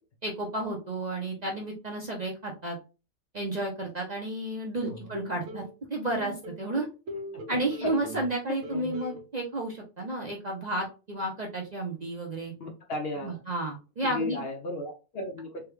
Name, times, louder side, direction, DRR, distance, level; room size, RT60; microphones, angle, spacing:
voice 1, 0.2-2.8 3.3-5.6 5.9-6.9 7.5-12.5 13.2-14.4, right 1 dB, 40° right, -1 dB, 0.6 m, -32 dB
sound 1, 4.9-5.7 6.1-8.3 8.6-9.2, equal, 80° right, 1.2 m, -40 dB
voice 2, 7.3-7.9 12.6-13.4 14.0-15.6, left 1 dB, 55° left, 2 dB, 0.8 m, -35 dB
3.5 x 2.3 x 3.1 m, 0.31 s
omnidirectional pair, 1.4 m